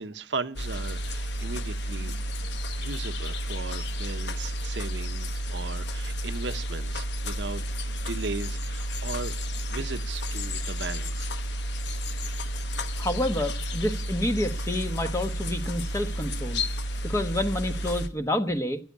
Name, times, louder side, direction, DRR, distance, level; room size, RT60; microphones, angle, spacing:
voice 1, 0.0-2.2 2.8-9.3 9.7-11.3, right 4 dB, 75° right, 0.9 m, -37 dB
sound 1, 0.6-18.1, equal, 65° left, 1.0 m, -31 dB
voice 2, 13.0-16.6 17.0-18.8, left 1 dB, 15° left, 1.2 m, -28 dB
14.0 x 9.5 x 8.5 m
head